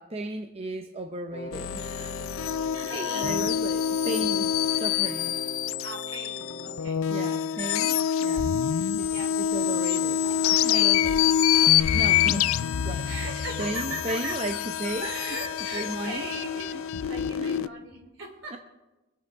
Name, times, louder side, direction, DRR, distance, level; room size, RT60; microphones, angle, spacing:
voice 1, 0.0-2.3 2.6-5.4 7.1-8.6 9.0-10.2 10.5-11.2 11.9-12.5 12.8-13.1 13.6-15.1 15.7-16.3 16.7-16.8 17.4-17.7 18.5-18.6, right 2 dB, 30° right, 6 dB, 0.7 m, -35 dB
Wind instrument woodwind instrument, 1.3-7.0, left 1 dB, 40° left, 0.6 m, -41 dB
sound 1, 1.5-17.7, left 9 dB, 90° left, 0.4 m, -26 dB
voice 2, 2.8-3.4 5.8-7.0 9.1-9.7 10.2-11.3 13.0-14.3 15.0-18.6, right 3 dB, 65° right, 1 dB, 3.7 m, -39 dB
sound 2, 10.2-16.9, left 1 dB, ahead, 2.5 m, -52 dB
24.0 x 8.5 x 4.6 m, 1.1 s
head